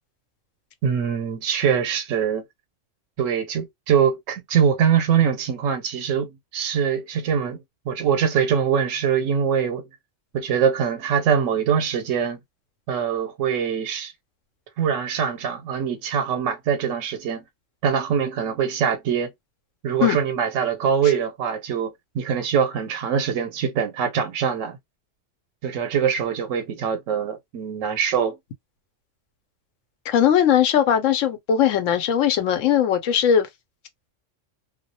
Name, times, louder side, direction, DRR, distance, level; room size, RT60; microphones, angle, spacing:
voice 1, 0.8-2.4 3.2-7.6 7.9-9.8 10.3-12.4 12.9-14.1 14.8-17.4 17.8-19.3 19.8-24.8 25.6-28.4, right 7 dB, 85° right, 1.0 m, -23 dB
voice 2, 30.1-33.5, left 9 dB, 85° left, 1.0 m, -19 dB
2.3 x 2.0 x 2.6 m
omnidirectional pair, 1.3 m